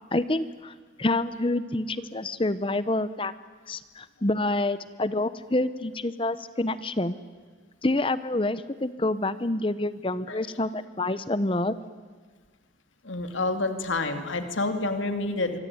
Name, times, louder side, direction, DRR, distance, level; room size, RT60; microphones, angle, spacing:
voice 1, 0.1-3.3 3.7-7.2 7.8-11.7, left 2 dB, 25° left, 14 dB, 0.8 m, -27 dB
voice 2, 13.0-15.6, left 2 dB, 85° left, 7 dB, 2.6 m, -28 dB
26.0 x 23.5 x 9.5 m, 1.5 s
head